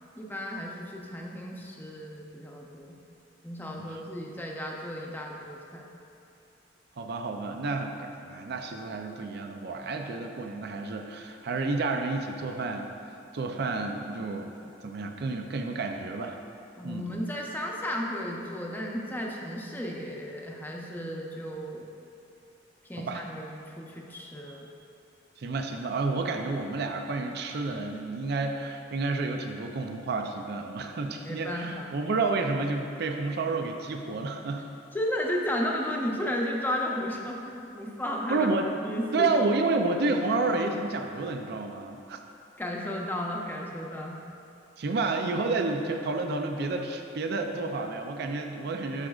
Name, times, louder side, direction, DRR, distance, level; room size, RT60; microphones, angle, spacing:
voice 1, 0.2-3.0 3.4-6.0 16.8-21.9 22.9-24.7 31.2-31.9 34.9-38.5 38.8-39.4 42.6-44.2, left 1 dB, 10° left, -1 dB, 0.7 m, -34 dB
voice 2, 7.0-14.5 14.8-16.4 16.8-17.1 23.0-23.2 25.4-34.6 38.3-38.7 39.1-42.2 44.8-49.1, right 3 dB, 60° right, 4 dB, 0.4 m, -30 dB
14.0 x 4.9 x 2.4 m, 2.7 s
head